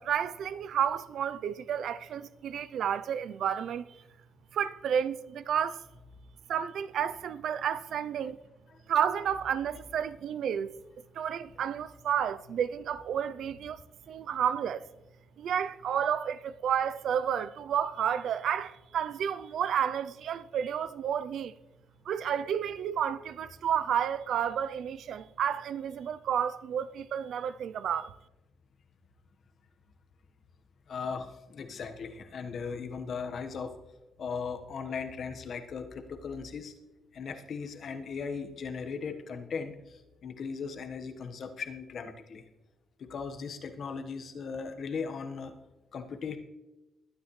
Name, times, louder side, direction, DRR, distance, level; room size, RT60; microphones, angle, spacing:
voice 1, 0.0-3.8 4.5-5.8 6.5-8.4 8.9-10.7 11.1-13.8 14.1-14.9 15.4-21.5 22.1-28.2, right 8 dB, 70° right, 0.5 m, -31 dB
voice 2, 30.9-33.8 34.2-36.7 37.1-42.4 43.0-45.5 45.9-46.4, left 5 dB, 55° left, 1.3 m, -38 dB
21.0 x 9.5 x 3.2 m
cardioid pair, 90°, 0 cm